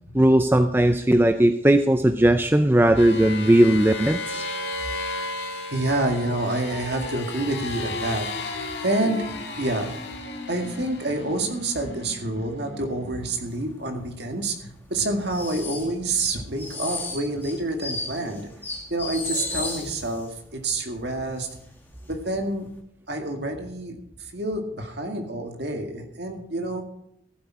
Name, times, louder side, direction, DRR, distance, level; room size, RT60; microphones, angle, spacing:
voice 1, 0.1-4.5, right 1 dB, 10° right, 8 dB, 0.4 m, -18 dB
sound 1, 3.0-13.8, left 2 dB, 55° left, 2.3 m, -34 dB
voice 2, 5.7-9.9 10.5-18.5 18.9-21.5 22.1-22.7 23.1-26.8, right 2 dB, 55° right, 4 dB, 2.0 m, -28 dB
sound 2, 13.5-13.7 14.0-14.1 14.6-20.3 20.7-20.8 21.1-21.7 22.0-22.2 22.7-22.8, left 3 dB, 10° left, 2.0 m, -34 dB
15.0 x 8.2 x 4.7 m, 0.76 s
head